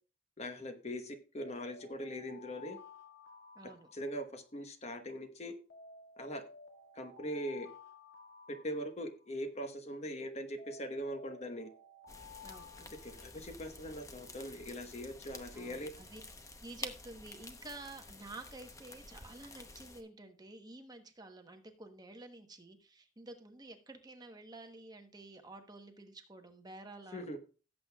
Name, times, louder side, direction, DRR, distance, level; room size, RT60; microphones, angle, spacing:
voice 1, 0.4-2.8 3.9-5.5 6.2-6.4 6.9-7.7 8.5-11.7 13.0-15.9 27.1-27.4, equal, 35° left, 8 dB, 1.1 m, -41 dB
sound 1, 1.4-4.6 5.7-9.5 10.6-13.8, left 4 dB, 70° left, 2.0 m, -55 dB
voice 2, 3.5-3.9 12.4-12.9 15.5-16.2 16.6-27.4, right 2 dB, 20° right, 5 dB, 1.0 m, -51 dB
sound 2, 12.1-20.0, left 2 dB, 20° left, 0.9 m, -50 dB
17.0 x 7.6 x 2.3 m, 0.36 s
head